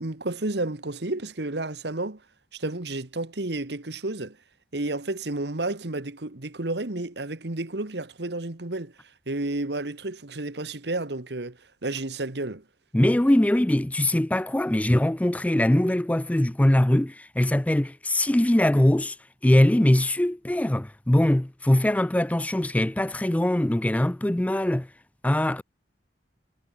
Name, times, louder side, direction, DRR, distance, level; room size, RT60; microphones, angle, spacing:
voice 1, 0.0-2.2 2.5-4.4 4.7-8.9 9.3-12.6, right 2 dB, 70° right, 1.6 m, -31 dB
voice 2, 12.9-19.2 19.4-24.9 25.2-25.6, left 1 dB, 10° left, 0.4 m, -22 dB
head